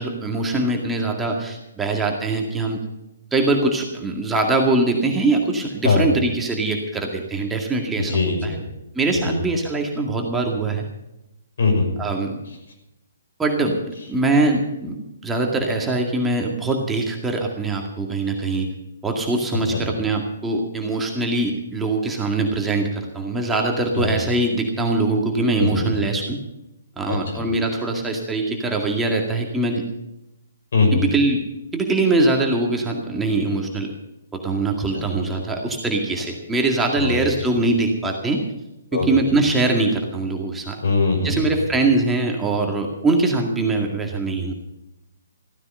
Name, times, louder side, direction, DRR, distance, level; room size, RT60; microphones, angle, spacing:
voice 1, 0.0-2.8 3.3-8.6 8.9-10.8 12.0-12.4 13.4-15.0 15.2-18.7 19.0-26.4 27.0-29.8 30.9-31.4 31.7-33.9 34.3-38.4 38.9-40.8 41.2-44.5, right 2 dB, 10° right, 1 dB, 2.1 m, -22 dB
voice 2, 8.0-8.6 9.2-9.4 11.6-11.9 19.7-19.8 23.9-24.1 25.6-25.9 27.1-27.4 30.7-31.0 34.9-35.0 37.0-37.2 38.9-39.1 40.8-41.4, left 3 dB, 60° left, 4 dB, 5.9 m, -21 dB
15.5 x 14.5 x 5.6 m, 0.91 s
figure-of-eight pair, 130°, 0 cm